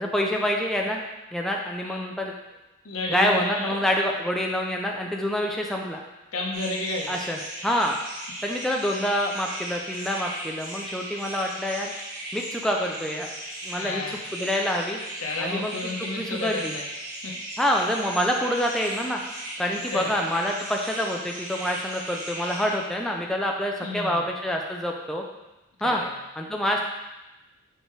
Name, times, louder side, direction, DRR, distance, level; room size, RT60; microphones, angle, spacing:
voice 1, 0.0-2.3 3.1-6.0 7.1-7.4 7.6-8.0 8.4-11.9 12.3-13.3 13.6-14.0 14.3-15.0 15.4-15.7 16.2-16.7 17.6-19.2 19.6-25.2 25.8-26.0 26.4-26.8, equal, ahead, 0 dB, 0.4 m, -26 dB
voice 2, 2.8-3.8 6.3-7.2 13.7-14.2 15.2-16.9 17.2-17.3 19.9-20.2 23.8-24.3 25.8-26.1, left 2 dB, 80° left, -1 dB, 1.1 m, -31 dB
sound 1, 6.5-22.7, right 1 dB, 35° right, 1.7 m, -37 dB
6.5 x 4.7 x 3.2 m, 1.0 s
head